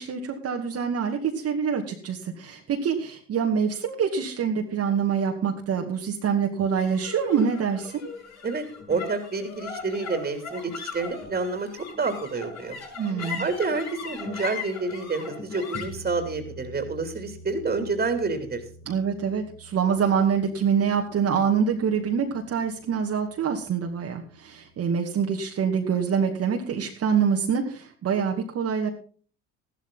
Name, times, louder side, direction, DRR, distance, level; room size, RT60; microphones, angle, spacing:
voice 1, 0.0-8.0 13.0-13.5 18.9-28.9, right 6 dB, 50° right, 2 dB, 2.3 m, -25 dB
sound 1, 6.8-23.3, left 4 dB, 55° left, 6.9 m, -40 dB
voice 2, 8.4-11.7 12.0-12.8 13.4-18.6, right 3 dB, 25° right, 7 dB, 3.1 m, -28 dB
14.0 x 12.5 x 4.0 m, 0.41 s
hypercardioid pair, 70°, 32 cm